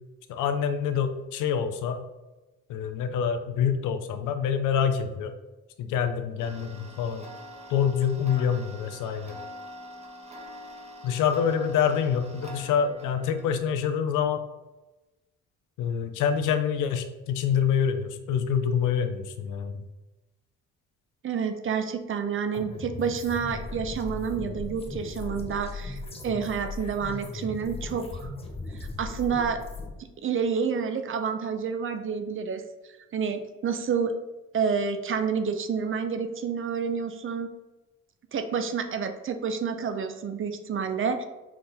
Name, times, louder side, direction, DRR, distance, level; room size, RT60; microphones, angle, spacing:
voice 1, 0.3-2.0 2.7-5.3 5.8-7.2 7.7-9.4 11.0-14.4 15.8-19.8, left 7 dB, 85° left, 8 dB, 0.6 m, -26 dB
Tick-tock, 6.4-13.6, equal, 20° right, 1.1 m, -45 dB
voice 2, 21.2-26.0 26.2-28.3 29.0-29.6 30.2-32.6 33.1-34.1 34.5-37.5 38.3-41.3, right 6 dB, 45° right, 8 dB, 0.6 m, -29 dB
sound 1, 22.5-29.9, left 3 dB, 20° left, 0.8 m, -37 dB
5.9 x 2.6 x 3.4 m, 1.1 s
cardioid pair, 90°, 30 cm